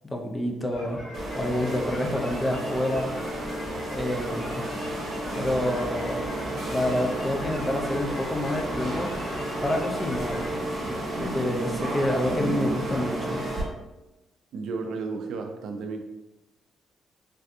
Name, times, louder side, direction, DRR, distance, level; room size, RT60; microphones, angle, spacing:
voice 1, 0.0-1.0 1.3-3.1 3.9-4.6 5.3-6.2 6.7-9.1 9.6-10.5 11.2-13.4, left 1 dB, 15° left, 2 dB, 0.4 m, -28 dB
sound 1, 0.7-10.6, left 1 dB, 55° left, 0.9 m, -40 dB
sound 2, 1.1-13.6, right 1 dB, 50° right, 0.9 m, -32 dB
voice 2, 14.5-16.0, right 4 dB, 80° right, 5 dB, 0.4 m, -33 dB
3.3 x 2.6 x 2.4 m, 1.0 s
cardioid pair, 145°, 0 cm